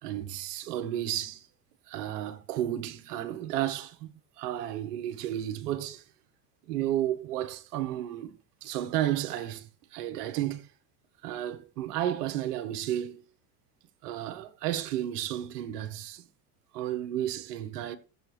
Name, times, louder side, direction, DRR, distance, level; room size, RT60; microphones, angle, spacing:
voice 1, 0.0-1.5 1.9-6.0 6.7-10.7 11.2-13.2 14.0-16.2 16.7-18.0, right 12 dB, 75° right, 1.4 m, -32 dB
15.5 x 7.3 x 3.2 m
hypercardioid pair, 80°, 48 cm